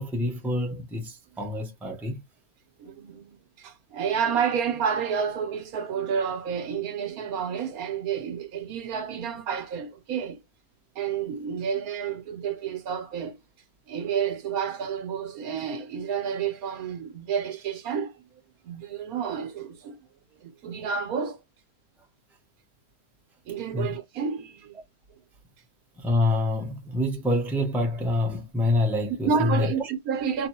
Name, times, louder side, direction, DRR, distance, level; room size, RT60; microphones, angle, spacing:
voice 1, 0.0-2.2 23.7-23.9 26.0-29.7, left 2 dB, ahead, 0.7 m, -26 dB
voice 2, 2.8-10.4 10.9-13.4 13.9-18.1 18.6-20.0 20.4-21.4 23.5-24.7 29.2-30.5, right 7 dB, 75° right, 1.3 m, -30 dB
4.4 x 2.6 x 2.8 m
omnidirectional pair, 1.6 m